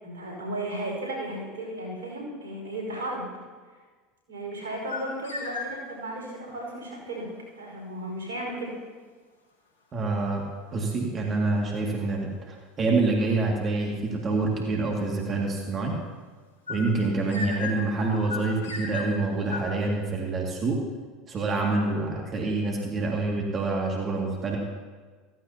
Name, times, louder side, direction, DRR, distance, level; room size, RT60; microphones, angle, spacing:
voice 1, 0.0-3.3 4.3-7.3 7.6-8.7 17.1-17.3 21.9-22.1, right 1 dB, 85° right, -1 dB, 4.9 m, -35 dB
sound 1, 4.7-6.1 16.7-19.8, left 3 dB, 90° left, 3.9 m, -36 dB
voice 2, 9.9-10.4 10.7-15.9 16.7-20.8 21.3-24.6, right 3 dB, 35° right, -1 dB, 2.2 m, -27 dB
15.5 x 15.5 x 2.9 m, 1.5 s
hypercardioid pair, 80°, 0 cm